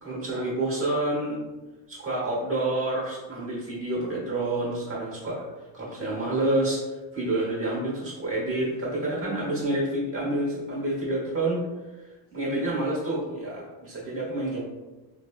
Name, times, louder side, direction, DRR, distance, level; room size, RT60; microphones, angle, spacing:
voice 1, 0.0-1.4 1.9-5.4 5.7-6.8 7.1-11.6 12.3-14.6, right 2 dB, 30° right, -6 dB, 1.0 m, -28 dB
3.9 x 2.0 x 2.3 m, 1.1 s
cardioid pair, 175°, 46 cm